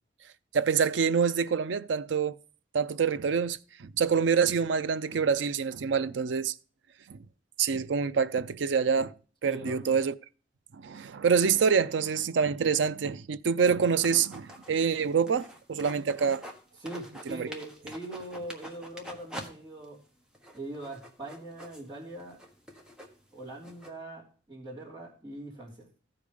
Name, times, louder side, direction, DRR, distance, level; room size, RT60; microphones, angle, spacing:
voice 1, 0.5-2.3 2.7-6.5 7.1-7.2 7.6-9.1 9.4-10.1 10.8-16.4 17.3-17.5, right 6 dB, 90° right, 0.5 m, -26 dB
voice 2, 9.5-10.0 16.8-20.0 20.5-22.4 23.3-25.9, right 1 dB, 20° right, 3.2 m, -41 dB
sound 1, 13.8-16.6 16.9-19.5 19.8-19.9 20.3-23.9, equal, 5° right, 1.3 m, -46 dB
15.0 x 5.0 x 5.2 m
head